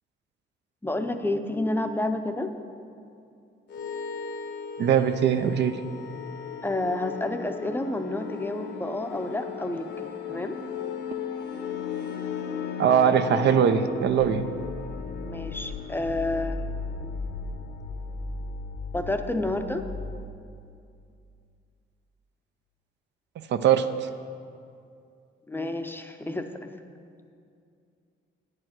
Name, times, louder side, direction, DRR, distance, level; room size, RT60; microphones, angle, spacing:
voice 1, 0.8-2.5 6.6-9.9 10.3-10.6 15.2-16.6 17.0-17.1 18.9-19.8 25.5-26.8, left 2 dB, 10° left, 6 dB, 0.5 m, -29 dB
sound 1, 3.7-20.3, left 5 dB, 60° left, 0.8 m, -36 dB
voice 2, 4.8-5.8 12.8-14.4 23.4-24.1, right 8 dB, 65° right, 10 dB, 0.5 m, -21 dB
9.6 x 4.8 x 7.5 m, 2.4 s
cardioid pair, 90°, 20 cm